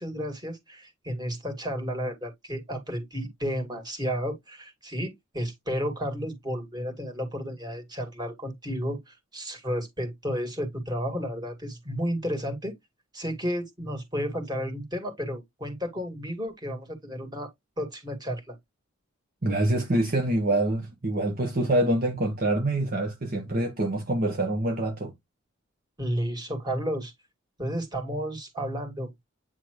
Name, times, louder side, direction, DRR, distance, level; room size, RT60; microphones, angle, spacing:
voice 1, 0.0-12.7 13.1-17.5 17.8-18.6 26.0-27.1 27.6-29.1, equal, 20° right, 2.4 m, -32 dB
voice 2, 19.4-25.1, right 1 dB, 45° right, 1.1 m, -25 dB
9.1 x 3.7 x 3.1 m
head